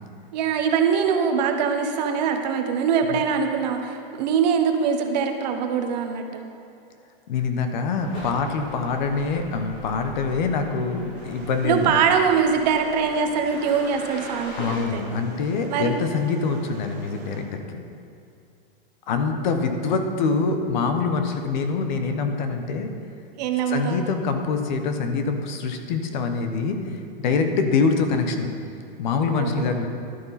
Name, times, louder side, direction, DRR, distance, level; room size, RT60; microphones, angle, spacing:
voice 1, 0.3-6.4 11.6-15.0 15.7-15.9 23.4-24.0 29.3-29.8, right 6 dB, 45° right, 5 dB, 1.1 m, -23 dB
voice 2, 7.3-11.9 14.6-17.8 19.1-22.9 23.7-28.5 29.0-29.9, left 4 dB, 50° left, 6 dB, 1.1 m, -25 dB
sound 1, 8.0-14.8, equal, 35° left, 2.5 m, -41 dB
sound 2, 11.2-17.4, right 3 dB, 25° right, 1.5 m, -43 dB
12.0 x 11.0 x 4.2 m, 2.5 s
supercardioid pair, 165°, 30 cm